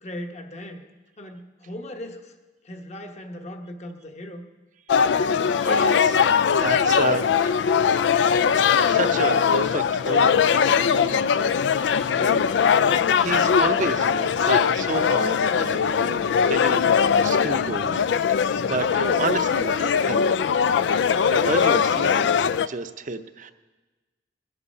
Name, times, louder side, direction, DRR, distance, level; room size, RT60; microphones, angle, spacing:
voice 1, 0.0-0.8 1.2-2.3 2.6-4.4, left 1 dB, 40° left, 5 dB, 1.2 m, -38 dB
sound 1, 4.9-22.7, left 7 dB, 70° left, 0.3 m, -21 dB
voice 2, 5.6-8.2 8.8-12.5 12.7-18.0 18.3-20.6 21.3-23.5, right 3 dB, 45° right, 9 dB, 0.7 m, -31 dB
21.0 x 8.2 x 5.5 m, 1.2 s
head